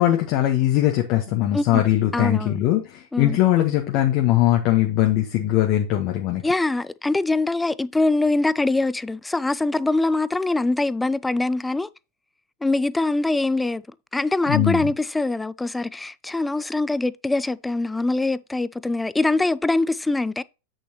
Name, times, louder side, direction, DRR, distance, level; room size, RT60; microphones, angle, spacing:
voice 1, 0.0-6.4 14.5-14.9, left 13 dB, 40° left, 1.1 m, -20 dB
voice 2, 2.1-2.6 3.1-3.4 6.4-11.9 12.6-13.8 14.1-20.4, left 2 dB, 5° left, 0.3 m, -23 dB
8.4 x 6.6 x 2.8 m
figure-of-eight pair, 90°, 0 cm